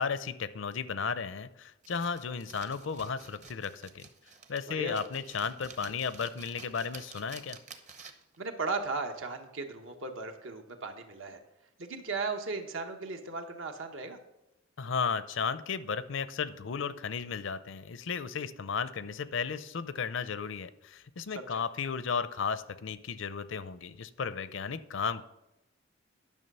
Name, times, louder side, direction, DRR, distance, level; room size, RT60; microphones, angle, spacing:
voice 1, 0.0-4.1 4.5-7.6 14.8-25.2, left 6 dB, 65° left, 14 dB, 0.5 m, -34 dB
sound 1, 1.8-8.4, right 5 dB, 35° right, 0.8 m, -51 dB
voice 2, 4.7-5.0 8.4-11.4 11.8-14.2 21.3-21.6, right 3 dB, 75° right, 5 dB, 1.2 m, -36 dB
11.0 x 6.3 x 5.5 m, 0.92 s
head